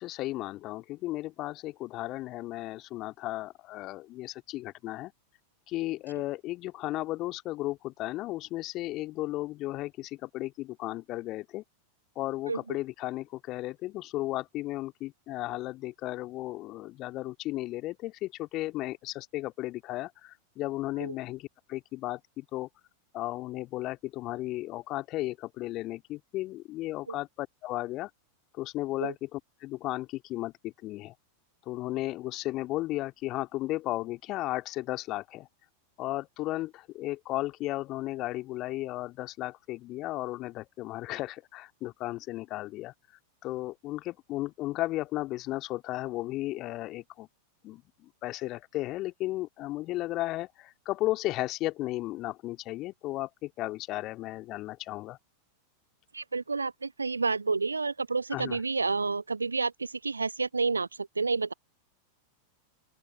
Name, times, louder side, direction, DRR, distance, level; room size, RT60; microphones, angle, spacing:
voice 1, 0.0-5.1 5.7-11.6 12.2-22.7 23.1-28.1 28.5-31.1 31.7-35.5 36.0-42.9 43.4-47.3 47.6-55.2 58.3-58.6, left 17 dB, 35° left, 2.3 m, -35 dB
voice 2, 56.1-60.9 61.2-61.5, right 4 dB, 80° right, 0.7 m, -29 dB
open air
figure-of-eight pair, 90°, 0 cm